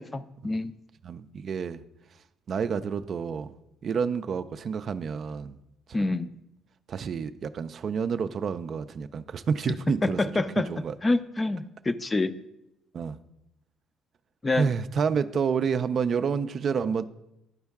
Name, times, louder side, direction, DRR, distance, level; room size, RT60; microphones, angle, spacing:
voice 1, 0.1-0.7 5.9-6.3 10.0-10.7 11.0-12.3 14.4-14.7, left 2 dB, 25° left, 12 dB, 0.4 m, -26 dB
voice 2, 1.0-1.8 2.5-3.5 3.8-5.6 6.0-6.1 6.9-10.2 10.6-11.0 12.9-13.2 14.5-17.1, right 6 dB, 55° right, 11 dB, 0.4 m, -29 dB
11.0 x 4.4 x 3.5 m, 0.84 s
supercardioid pair, 80°, 0 cm